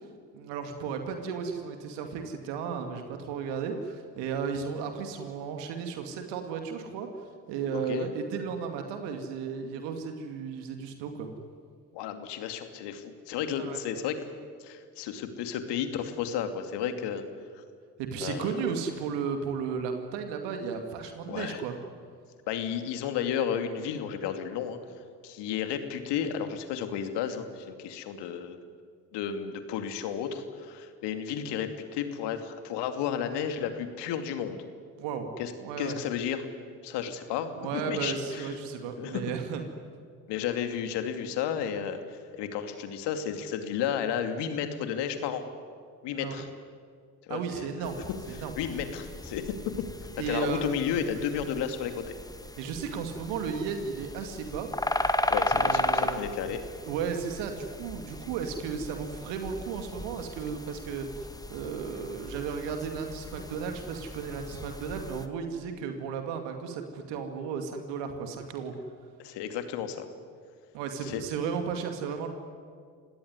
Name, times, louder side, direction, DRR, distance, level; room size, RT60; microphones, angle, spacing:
voice 1, 0.3-7.1 7.5-11.3 13.6-13.8 18.0-21.7 35.0-35.3 35.6-36.0 37.6-39.6 46.1-46.4 47.3-48.0 48.3-48.5 50.2-50.9 52.6-54.7 55.6-56.2 56.9-61.1 61.5-68.7 70.7-72.3, right 6 dB, 65° right, 5 dB, 2.5 m, -34 dB
voice 2, 7.7-8.1 11.9-14.2 14.6-17.2 17.6-17.7 18.2-18.6 21.3-21.7 22.5-24.8 25.2-28.6 29.1-34.6 35.4-35.5 35.8-36.5 36.8-38.5 39.0-39.2 40.3-45.4 46.0-46.5 47.3-48.0 48.6-49.4 50.3-52.0 55.3-56.6 69.2-70.1 71.0-71.2, left 8 dB, 60° left, 8 dB, 2.7 m, -32 dB
sound 1, 47.8-65.3, left 1 dB, 10° left, 1.8 m, -35 dB
29.5 x 17.5 x 9.7 m, 2.1 s
hypercardioid pair, 60°, 45 cm